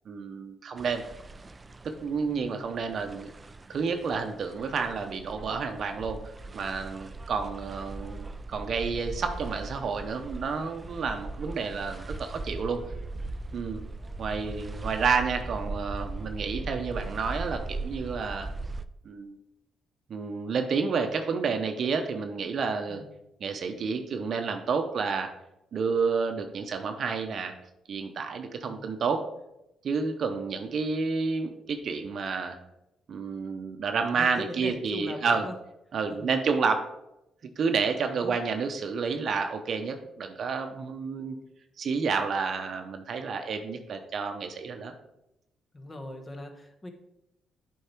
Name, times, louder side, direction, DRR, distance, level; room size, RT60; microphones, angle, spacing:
voice 1, 0.1-1.0 1.8-3.3 3.7-12.8 13.5-13.8 14.2-18.5 19.0-19.4 20.1-23.0 23.4-25.3 25.7-27.6 27.9-29.2 29.8-32.6 33.1-35.5 35.9-36.9 37.6-41.3 41.8-44.9, right 5 dB, 55° right, 6 dB, 0.7 m, -30 dB
sound 1, 0.8-18.8, right 2 dB, 25° right, 0.4 m, -39 dB
voice 2, 2.3-2.7 22.9-23.1 28.6-28.9 34.1-35.5 36.1-36.4 38.0-38.5 41.1-41.5 45.7-46.9, left 1 dB, 25° left, 5 dB, 1.2 m, -41 dB
8.1 x 4.6 x 4.5 m, 0.88 s
cardioid pair, 90°, 0 cm